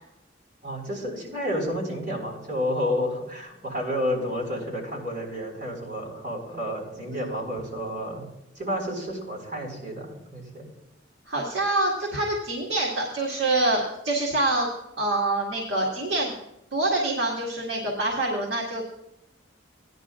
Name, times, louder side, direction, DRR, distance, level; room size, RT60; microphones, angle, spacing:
voice 1, 0.6-8.2 8.5-10.7, equal, 50° right, -3 dB, 4.9 m, -30 dB
voice 2, 7.1-7.5 11.3-14.7 15.0-16.3 16.7-18.8, right 2 dB, 70° right, -3 dB, 1.9 m, -26 dB
17.5 x 10.5 x 2.5 m, 0.87 s
head